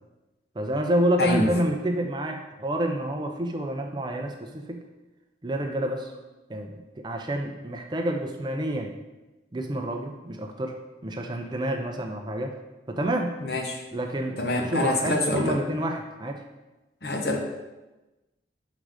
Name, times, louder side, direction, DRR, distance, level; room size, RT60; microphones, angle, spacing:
voice 1, 0.6-4.8 5.4-6.1 6.5-8.9 9.5-10.8 11.0-12.5 12.9-13.4 13.9-16.4, right 1 dB, 25° right, 3 dB, 0.5 m, -28 dB
voice 2, 1.2-1.5 13.4-13.8 14.4-15.6 17.0-17.4, left 2 dB, 65° left, 2 dB, 0.9 m, -25 dB
6.1 x 3.8 x 4.8 m, 1.1 s
head